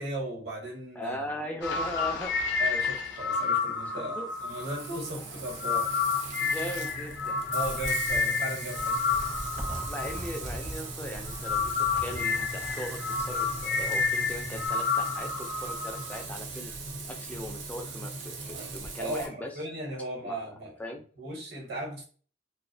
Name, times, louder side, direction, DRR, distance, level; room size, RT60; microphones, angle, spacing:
voice 1, 0.0-1.2 2.6-4.2 4.4-5.9 7.5-9.0 19.0-20.8 21.2-22.0, right 1 dB, 65° right, -1 dB, 1.0 m, -36 dB
voice 2, 1.0-2.3 3.9-4.3 6.4-7.4 9.8-16.7 17.0-19.5 20.2-20.4 20.8-21.0, equal, 10° left, 2 dB, 0.4 m, -39 dB
sound 1, 1.6-10.9 11.2-16.2, left 5 dB, 70° left, 0.5 m, -30 dB
Frying (food), 4.3-19.3, right 3 dB, 80° right, 0.6 m, -40 dB
Zipper (clothing), 7.4-14.7, equal, 35° right, 0.6 m, -41 dB
2.4 x 2.0 x 2.6 m, 0.41 s
head